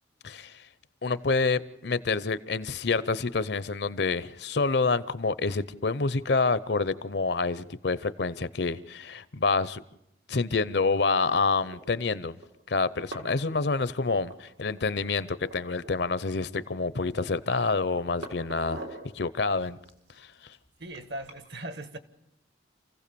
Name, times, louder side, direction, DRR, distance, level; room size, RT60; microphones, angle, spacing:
voice 1, 0.2-0.6 1.0-9.8 10.3-12.4 12.7-18.8 19.1-19.8 20.2-20.3, left 4 dB, 60° left, 0.7 m, -27 dB
sound 1, 11.4-11.8 12.4-12.5 12.8-13.4 13.7-14.8 15.1-15.2 15.4-16.2 16.6-17.4 17.8-19.1 19.6-21.4, right 1 dB, 90° right, 4.0 m, -44 dB
voice 2, 20.8-22.0, right 1 dB, 60° right, 1.5 m, -39 dB
27.5 x 15.5 x 7.0 m
head